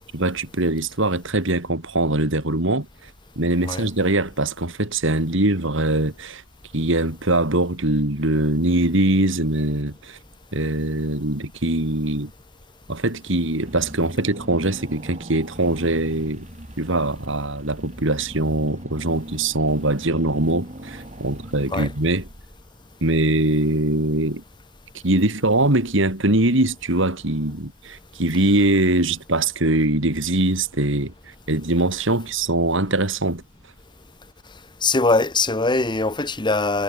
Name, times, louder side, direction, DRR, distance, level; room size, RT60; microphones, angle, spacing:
voice 1, 0.1-3.1 3.4-6.4 6.7-10.2 10.5-12.3 12.9-16.5 16.8-22.3 23.0-24.4 25.0-31.1 31.5-33.4, right 2 dB, 60° right, 3.1 m, -22 dB
Car / Engine, 13.7-22.8, right 1 dB, 35° right, 3.4 m, -39 dB
voice 2, 34.8-36.8, left 3 dB, 20° left, 1.1 m, -21 dB
head